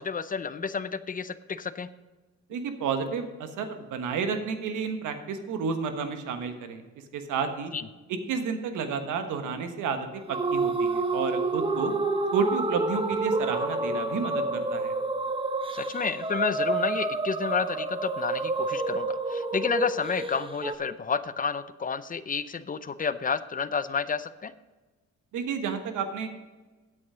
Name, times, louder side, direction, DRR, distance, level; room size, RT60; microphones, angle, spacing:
voice 1, 0.0-1.9 7.7-7.9 15.7-24.5, left 6 dB, 30° left, 14 dB, 0.6 m, -30 dB
voice 2, 2.5-6.8 7.1-7.7 8.1-11.9 12.3-14.9 25.3-26.3, right 5 dB, 80° right, 7 dB, 1.4 m, -31 dB
sound 1, 10.3-20.8, right 3 dB, 15° right, 0.9 m, -29 dB
9.6 x 8.2 x 5.0 m, 1.2 s
cardioid pair, 90°, 30 cm